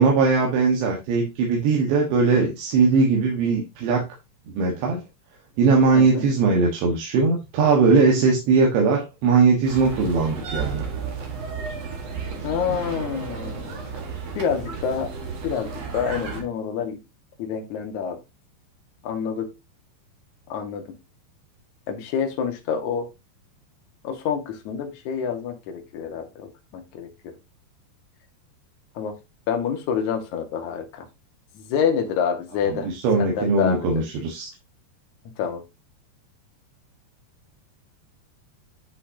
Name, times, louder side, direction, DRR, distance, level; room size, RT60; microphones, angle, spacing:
voice 1, 0.0-4.1 4.5-5.0 5.6-10.9 32.7-34.5, right 4 dB, 80° right, 0 dB, 3.8 m, -20 dB
voice 2, 5.9-6.3 12.4-13.9 14.4-15.1 15.4-17.0 17.4-18.2 19.0-19.5 20.5-20.8 21.9-23.1 24.0-27.3 29.0-29.1 29.5-31.0 31.5-32.9 33.2-33.9 35.4-35.6, left 7 dB, 55° left, 4 dB, 2.3 m, -27 dB
sound 1, 9.6-16.4, right 5 dB, 50° right, 2.2 m, -33 dB
10.5 x 5.6 x 2.8 m, 0.24 s
omnidirectional pair, 5.1 m